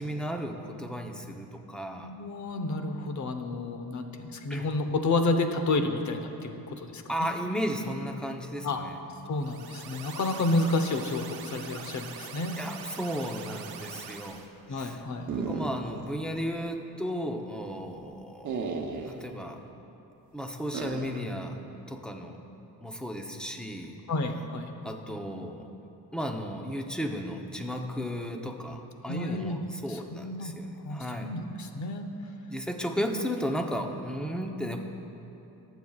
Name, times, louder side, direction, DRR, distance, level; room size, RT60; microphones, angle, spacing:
voice 1, 0.0-2.1 4.5-4.7 7.1-9.0 12.6-14.4 14.7-15.0 15.4-18.5 19.0-19.6 20.3-21.6 21.9-22.4 22.8-24.0 24.8-25.7 26.1-31.3 32.5-34.8, equal, ahead, 3 dB, 0.7 m, -34 dB
voice 2, 2.0-7.3 8.6-8.9 9.3-12.6 14.7-15.3 24.1-24.7 29.1-29.6 29.9-30.5 30.8-32.1, left 2 dB, 50° left, 6 dB, 0.9 m, -30 dB
sound 1, 9.4-14.5, right 7 dB, 75° right, 0.9 m, -43 dB
sound 2, 15.3-16.1 16.4-16.5 18.4-19.2 20.7-21.3, right 4 dB, 50° right, 0.9 m, -34 dB
19.5 x 8.0 x 2.4 m, 2.9 s
cardioid pair, 125°, 38 cm